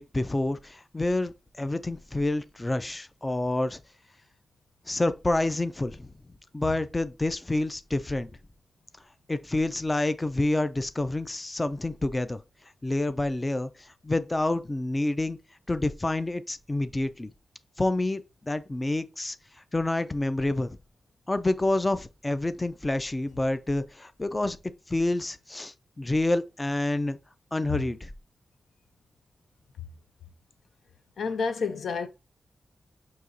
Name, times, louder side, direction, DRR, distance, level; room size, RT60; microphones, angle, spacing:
voice 1, 0.0-3.8 4.9-6.1 6.5-8.3 9.3-12.4 12.8-15.4 15.7-17.3 17.8-19.4 19.7-20.8 21.3-24.6 24.9-27.2 27.5-28.1, left 2 dB, 20° left, 0.4 m, -28 dB
voice 2, 31.2-32.1, left 5 dB, 85° left, 0.5 m, -29 dB
6.2 x 2.8 x 2.5 m
wide cardioid pair, 100°, 0 cm